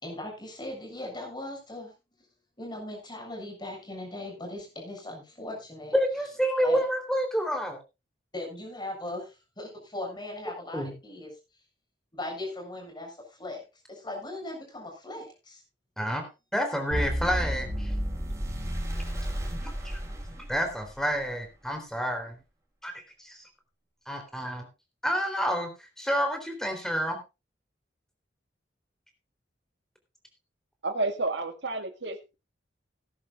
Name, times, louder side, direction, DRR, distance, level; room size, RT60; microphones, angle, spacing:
voice 1, 0.0-1.9 2.6-6.0 6.6-6.8 8.3-11.3 12.1-15.6, left 1 dB, 25° left, 1 dB, 6.9 m, -39 dB
voice 2, 5.9-7.8 10.7-10.9 16.0-16.2 16.5-17.9 19.6-20.0 20.5-22.4 22.8-22.9 23.2-23.5 24.1-24.7 25.0-25.7 26.0-27.2, equal, 5° left, 5 dB, 3.5 m, -29 dB
sound 1, 16.9-21.0, equal, 15° right, 6.1 m, -32 dB
voice 3, 30.8-32.4, right 2 dB, 70° right, 7 dB, 2.1 m, -30 dB
19.0 x 11.0 x 2.5 m, 0.27 s
head